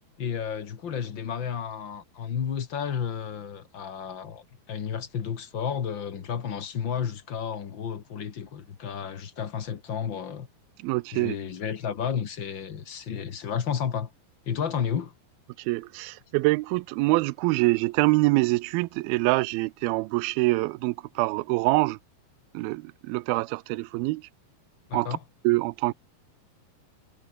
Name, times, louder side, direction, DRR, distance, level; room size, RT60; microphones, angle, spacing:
voice 1, 0.2-10.5 11.1-14.1 14.4-15.1 24.9-25.2, left 7 dB, 50° left, 1.6 m, -32 dB
voice 2, 10.8-11.4 15.6-22.0 22.5-24.3 24.9-25.1 25.4-25.9, right 22 dB, 85° right, 2.4 m, -25 dB
omnidirectional pair, 4.3 m